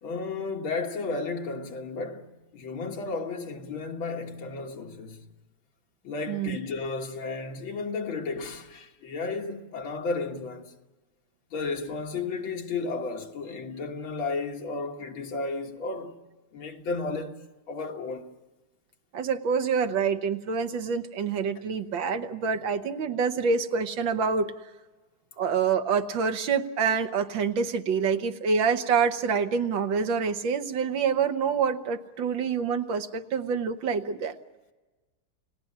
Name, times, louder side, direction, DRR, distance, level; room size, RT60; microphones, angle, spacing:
voice 1, 0.0-5.3 6.0-10.8 11.5-16.2 16.5-17.4 17.7-18.3, left 3 dB, 80° left, 2.5 m, -33 dB
voice 2, 6.3-6.6 19.1-24.5 25.4-34.4, right 5 dB, 70° right, 1.8 m, -26 dB
29.5 x 18.0 x 8.6 m
omnidirectional pair, 2.2 m